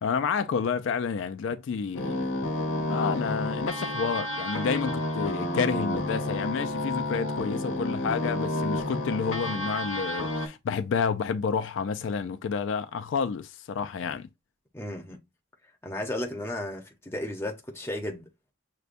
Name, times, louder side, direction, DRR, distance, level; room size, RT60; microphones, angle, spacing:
voice 1, 0.0-2.2 2.9-14.3, left 6 dB, 70° left, 0.3 m, -30 dB
sound 1, 1.9-10.5, left 1 dB, 85° left, 1.1 m, -30 dB
voice 2, 14.7-15.2 15.8-18.3, left 1 dB, 10° left, 0.7 m, -34 dB
6.5 x 2.2 x 2.5 m
head